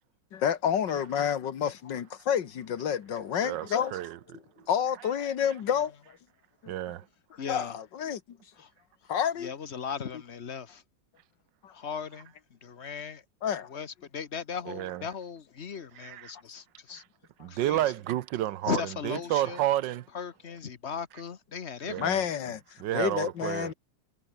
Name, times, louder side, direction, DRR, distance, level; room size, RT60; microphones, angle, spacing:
voice 1, 0.3-4.0 4.7-5.9 6.6-6.7 7.5-8.4 9.1-9.5 11.6-11.7 13.4-13.7 22.0-22.6 22.9-23.7, left 8 dB, 85° left, 2.1 m, -29 dB
voice 2, 3.4-4.2 6.7-7.0 14.7-15.0 16.0-16.3 17.4-20.0 21.9-22.2 22.8-23.7, right 13 dB, 85° right, 1.4 m, -30 dB
voice 3, 7.4-7.8 8.6-8.7 9.4-10.8 11.7-12.3 12.6-13.2 13.7-17.0 17.5-17.8 18.7-19.6 20.1-22.2, left 6 dB, 45° left, 1.2 m, -37 dB
omnidirectional pair, 1.9 m